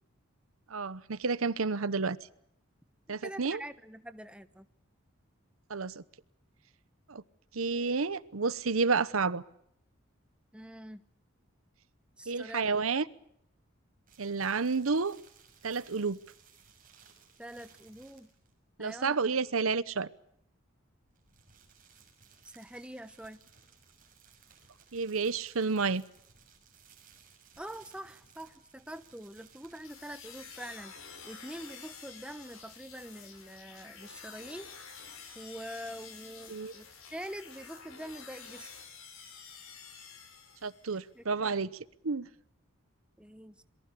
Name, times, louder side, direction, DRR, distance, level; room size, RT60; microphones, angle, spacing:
voice 1, 0.7-2.2 3.1-3.6 5.7-6.0 7.1-7.2 7.5-9.4 12.3-13.0 14.2-15.2 15.6-16.2 18.8-20.1 24.9-26.0 36.5-36.7 40.6-41.7 42.0-42.3, right 4 dB, 80° right, 17 dB, 0.9 m, -30 dB
voice 2, 3.1-4.7 10.5-11.0 12.2-12.6 17.4-18.3 18.8-19.4 22.4-23.4 27.6-30.9 31.2-34.7 35.3-38.7 41.1-41.6 43.2-43.6, equal, 5° right, 11 dB, 1.0 m, -45 dB
sound 1, 14.1-18.6 21.0-30.6, right 6 dB, 40° right, 6.2 m, -60 dB
sound 2, 29.8-41.0, left 6 dB, 85° left, 6.2 m, -50 dB
28.0 x 22.5 x 6.8 m, 0.72 s
head